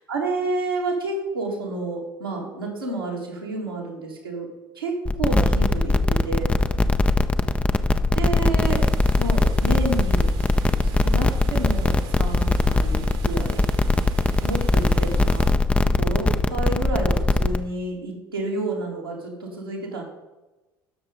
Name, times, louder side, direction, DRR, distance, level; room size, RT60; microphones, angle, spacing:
voice 1, 0.1-4.5 4.8-4.9 5.2-6.5 8.1-8.9 9.1-10.3 10.8-13.6 14.4-15.5 15.9-20.0, right 2 dB, 85° right, -3 dB, 2.6 m, -30 dB
sound 1, 5.1-17.6, left 2 dB, 10° left, 0.6 m, -20 dB
sound 2, 8.6-15.5, right 7 dB, 55° right, 1.5 m, -44 dB
16.5 x 6.7 x 4.0 m, 1.1 s
figure-of-eight pair, 60°, 12 cm